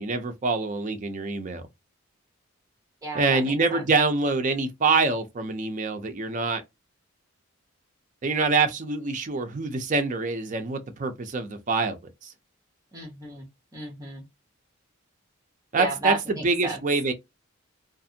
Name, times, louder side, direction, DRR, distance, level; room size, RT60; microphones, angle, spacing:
voice 1, 0.0-1.6 3.1-6.6 8.2-12.0 12.2-12.3 15.7-17.1, right 3 dB, 35° right, 0.4 m, -25 dB
voice 2, 3.0-3.8 12.9-13.5 13.7-14.2 15.8-16.8, right 3 dB, 15° right, 0.9 m, -33 dB
2.5 x 2.4 x 2.7 m
head